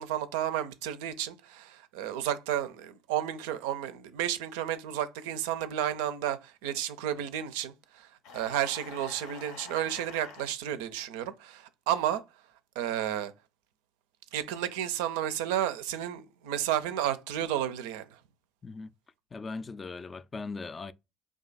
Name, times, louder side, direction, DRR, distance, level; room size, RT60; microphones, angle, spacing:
voice 1, 0.0-8.1 8.3-12.2 12.8-13.3 14.3-18.1, right 11 dB, 75° right, 0.4 m, -32 dB
sound 1, 8.2-10.5, left 5 dB, 70° left, 0.7 m, -47 dB
voice 2, 19.3-20.9, left 4 dB, 30° left, 0.3 m, -39 dB
2.4 x 2.3 x 4.0 m
hypercardioid pair, 65°, 0 cm